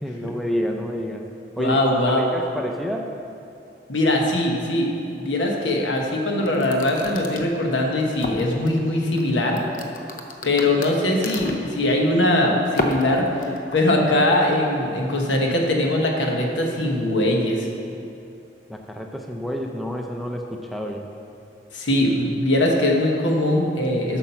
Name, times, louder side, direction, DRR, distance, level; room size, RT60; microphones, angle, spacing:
voice 1, 0.0-1.2 1.6-3.1 18.7-21.1, equal, ahead, 2 dB, 0.4 m, -29 dB
voice 2, 1.6-2.3 3.9-9.6 10.4-17.7 21.7-24.2, left 1 dB, 80° left, 1 dB, 1.2 m, -21 dB
sound 1, 6.4-8.7 9.2-11.7 12.7-13.8, left 1 dB, 45° left, 0.6 m, -31 dB
8.3 x 6.1 x 5.7 m, 2.6 s
head